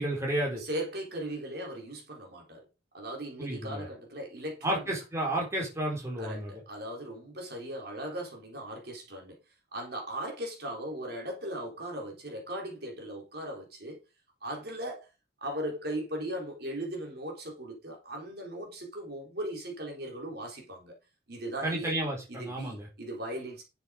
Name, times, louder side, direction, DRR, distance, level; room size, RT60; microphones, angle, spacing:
voice 1, 0.0-0.6 3.4-3.9 4.6-6.6 21.6-22.9, right 1 dB, 15° right, 4.1 m, -32 dB
voice 2, 0.6-2.6 2.9-4.9 6.2-9.4 9.7-14.0 14.4-15.1 15.4-20.9 21.3-22.0 22.3-23.6, right 1 dB, 50° right, 3.9 m, -38 dB
11.5 x 7.1 x 5.1 m
head